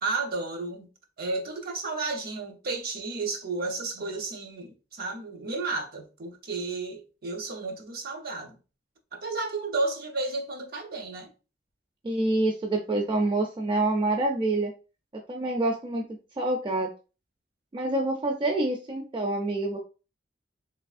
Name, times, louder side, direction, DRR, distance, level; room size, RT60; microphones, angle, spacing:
voice 1, 0.0-0.9 1.2-8.6 9.1-11.3, right 3 dB, 55° right, 0.7 m, -32 dB
voice 2, 12.0-14.7 15.3-16.0 16.4-16.9 17.7-19.8, right 2 dB, 30° right, 0.4 m, -26 dB
3.4 x 3.0 x 2.4 m
head